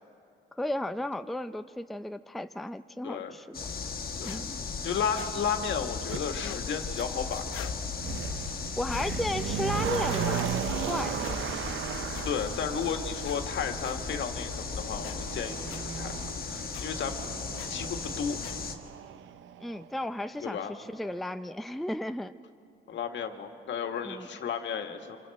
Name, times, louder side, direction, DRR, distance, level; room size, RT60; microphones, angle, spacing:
voice 1, 0.6-3.7 4.2-4.6 8.8-10.5 10.9-11.3 19.6-22.3 24.0-24.3, left 1 dB, ahead, 9 dB, 0.5 m, -34 dB
voice 2, 3.0-3.3 4.2-4.5 4.8-7.7 9.9-10.5 12.2-16.1 16.5-17.2 17.7-18.4 20.4-20.7 22.9-25.2, left 7 dB, 65° left, 5 dB, 1.8 m, -33 dB
sound 1, 3.5-18.8, left 5 dB, 50° left, 1.6 m, -36 dB
sound 2, 4.2-4.4 5.1-5.3 6.4-6.7 7.5-7.8 8.9-9.1 10.1-10.3 11.2-11.3 12.1-12.3 13.2-13.4 13.8-14.0 15.0-15.2 15.7-15.8 16.7-16.8 17.6-17.7 18.4-18.6, left 10 dB, 85° left, 1.0 m, -44 dB
Motor vehicle (road), 6.1-6.2 7.0-19.9 20.2-20.3, right 10 dB, 75° right, 0.7 m, -37 dB
27.0 x 26.0 x 4.2 m, 2.5 s
cardioid pair, 90°, 20 cm